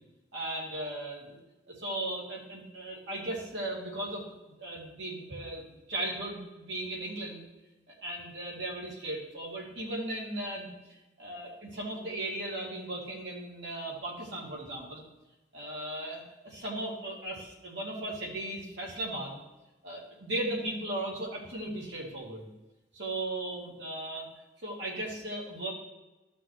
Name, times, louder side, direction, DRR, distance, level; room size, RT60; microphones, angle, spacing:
voice 1, 0.3-1.4 1.7-4.2 4.6-7.4 8.0-10.7 11.2-15.0 15.5-19.4 19.8-22.5 22.9-24.3 24.6-25.7, right 1 dB, 75° right, -3 dB, 2.5 m, -37 dB
14.0 x 6.1 x 3.1 m, 1.1 s
head